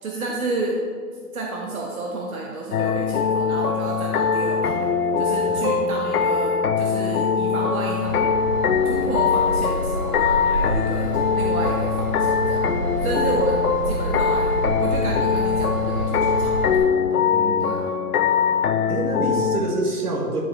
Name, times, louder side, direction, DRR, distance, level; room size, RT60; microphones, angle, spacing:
voice 1, 0.0-0.8 1.3-4.9 5.2-8.3 8.8-12.7 13.0-16.7 17.6-17.9, right 2 dB, 65° right, -1 dB, 0.9 m, -30 dB
sound 1, 2.7-19.6, left 6 dB, 80° left, 0.5 m, -22 dB
Train / Engine, 8.1-16.8, right 1 dB, 35° right, 1.1 m, -29 dB
voice 2, 17.3-17.9 18.9-20.4, right 2 dB, 90° right, -1 dB, 1.7 m, -27 dB
9.4 x 3.8 x 3.3 m, 2.1 s
hypercardioid pair, 170°, 45 cm